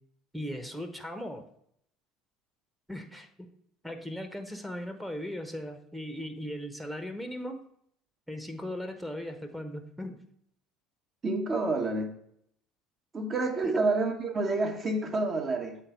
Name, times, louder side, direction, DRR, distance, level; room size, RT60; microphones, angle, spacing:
voice 1, 0.3-1.4 2.9-3.5 3.8-7.6 8.3-10.2 13.6-13.8, equal, ahead, 1.1 m, -38 dB
voice 2, 11.2-12.1 13.1-15.8, right 3 dB, 35° right, 1.4 m, -28 dB
7.6 x 4.2 x 5.3 m
figure-of-eight pair, 60°, 0 cm